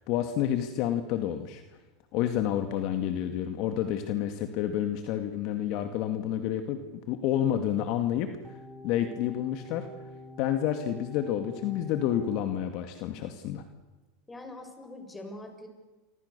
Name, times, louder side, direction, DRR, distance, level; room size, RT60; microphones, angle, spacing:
voice 1, 0.0-1.6 2.1-8.6 8.8-9.9 10.4-13.6, left 10 dB, 55° left, 7 dB, 2.2 m, -29 dB
sound 1, 8.4-12.5, left 1 dB, 10° right, 5.6 m, -46 dB
voice 2, 14.3-15.7, left 1 dB, 15° left, 6 dB, 6.6 m, -43 dB
30.0 x 25.5 x 6.9 m, 1.2 s
hypercardioid pair, 110°, 0 cm